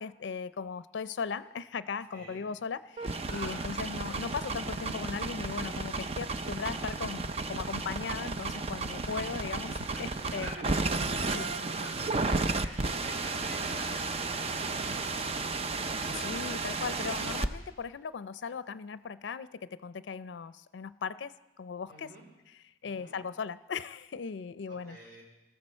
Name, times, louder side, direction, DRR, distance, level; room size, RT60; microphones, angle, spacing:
voice 1, 0.0-10.5 11.3-11.5 16.1-22.1 22.8-25.0, left 5 dB, 85° left, 14 dB, 0.4 m, -38 dB
voice 2, 2.1-2.4 3.3-4.1 9.9-15.4 21.9-22.2 22.8-23.2 24.7-25.2, right 1 dB, 55° right, -2 dB, 5.1 m, -48 dB
sound 1, 3.0-17.5, right 3 dB, 35° right, 0.6 m, -33 dB
20.0 x 14.0 x 4.4 m, 0.99 s
head